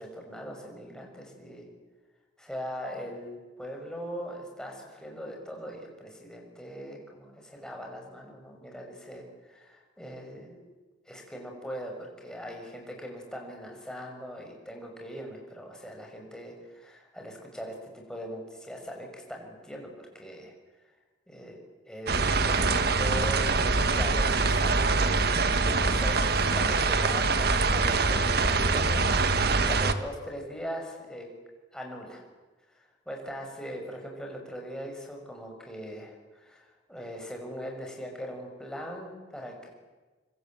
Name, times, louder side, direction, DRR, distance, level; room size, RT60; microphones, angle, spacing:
voice 1, 0.0-1.7 2.4-10.6 11.1-20.5 20.8-20.9 21.3-21.6 21.9-31.3 31.7-32.2 32.7-39.7, equal, 5° left, 0 dB, 6.3 m, -40 dB
sound 1, 22.1-29.9, right 3 dB, 60° right, 1.6 m, -24 dB
25.5 x 25.5 x 7.9 m, 1.3 s
head